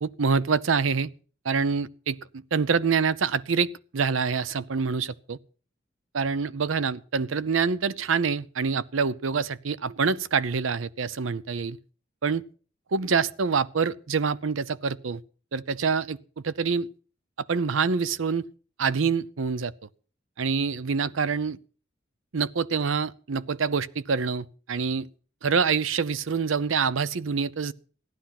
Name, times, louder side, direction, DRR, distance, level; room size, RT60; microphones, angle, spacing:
voice 1, 0.0-1.1 1.4-3.7 3.9-5.4 6.1-11.8 12.2-12.4 12.9-15.2 15.5-16.2 16.4-16.9 17.5-18.4 18.8-19.7 20.4-21.6 22.3-25.1 25.4-27.7, right 5 dB, 85° right, 0.6 m, -26 dB
15.5 x 11.5 x 5.9 m
head